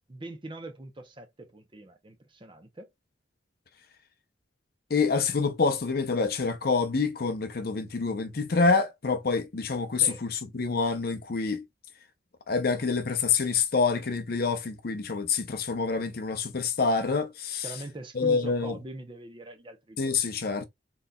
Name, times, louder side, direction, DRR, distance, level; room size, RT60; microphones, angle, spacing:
voice 1, 0.1-2.9 10.0-10.2 17.6-20.2, right 2 dB, 25° right, 0.7 m, -42 dB
voice 2, 4.9-11.6 12.5-17.6 18.2-18.8 20.0-20.7, left 4 dB, 55° left, 0.6 m, -27 dB
4.1 x 3.9 x 2.2 m
head